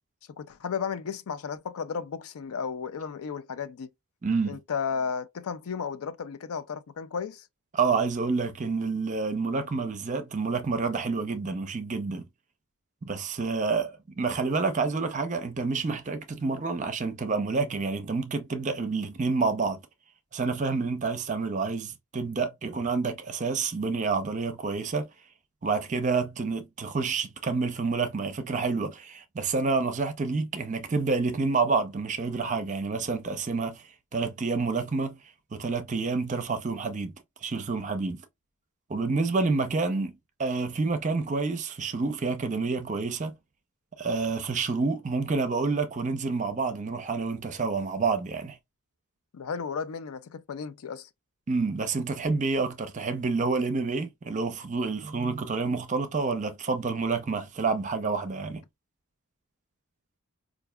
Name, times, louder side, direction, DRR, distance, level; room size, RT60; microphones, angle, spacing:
voice 1, 0.4-3.9 4.5-7.4 49.3-51.1, left 6 dB, 70° left, 0.4 m, -34 dB
voice 2, 4.2-4.6 7.7-12.3 13.0-19.8 20.3-25.1 25.6-33.8 34.1-35.2 35.5-37.1 37.4-38.2 38.9-40.1 40.4-43.3 44.0-48.6 51.5-58.6, right 4 dB, 35° right, 0.5 m, -28 dB
4.6 x 2.5 x 2.2 m
head